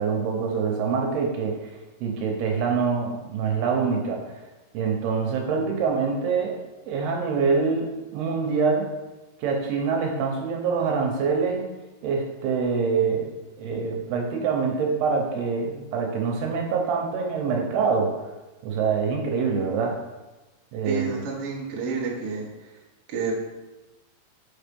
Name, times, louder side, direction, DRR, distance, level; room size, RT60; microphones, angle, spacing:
voice 1, 0.0-1.7 2.0-4.2 4.7-6.6 6.9-8.9 9.4-11.7 12.0-18.2 18.6-20.0 20.7-21.3, right 5 dB, 75° right, 1 dB, 3.0 m, -25 dB
voice 2, 20.8-22.5 23.1-23.3, right 5 dB, 55° right, -4 dB, 1.7 m, -29 dB
6.4 x 5.7 x 5.3 m, 1.1 s
omnidirectional pair, 4.8 m